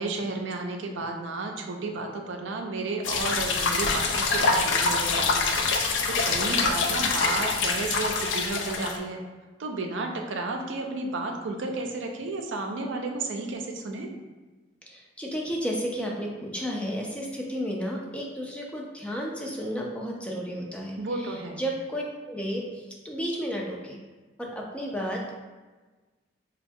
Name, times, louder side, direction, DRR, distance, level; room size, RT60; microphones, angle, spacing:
voice 1, 0.0-5.5 6.1-9.2 9.6-14.2 21.0-21.6, right 2 dB, 90° right, 3 dB, 0.4 m, -32 dB
sound 1, 3.0-9.0, left 4 dB, 85° left, 0.4 m, -25 dB
voice 2, 14.9-24.0 24.4-25.2, equal, 5° left, -2 dB, 0.4 m, -32 dB
4.2 x 2.2 x 2.6 m, 1.3 s
head